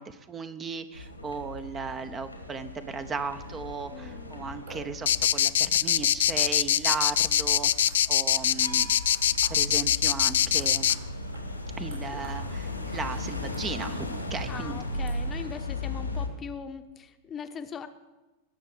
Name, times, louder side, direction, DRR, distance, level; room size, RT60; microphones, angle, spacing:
voice 1, 0.0-8.9 9.5-10.9 11.8-14.8, right 5 dB, 20° right, 10 dB, 0.8 m, -36 dB
sound 1, 0.9-16.3, left 2 dB, 90° left, 1.9 m, -37 dB
voice 2, 3.9-4.5 11.9-12.2 14.5-17.9, left 7 dB, 25° left, 9 dB, 0.9 m, -41 dB
sound 2, 4.5-15.3, right 2 dB, 65° right, 6.4 m, -54 dB
sound 3, 5.1-11.0, left 10 dB, 60° left, 0.4 m, -23 dB
19.5 x 6.6 x 7.0 m, 1.1 s
figure-of-eight pair, 90°, 0 cm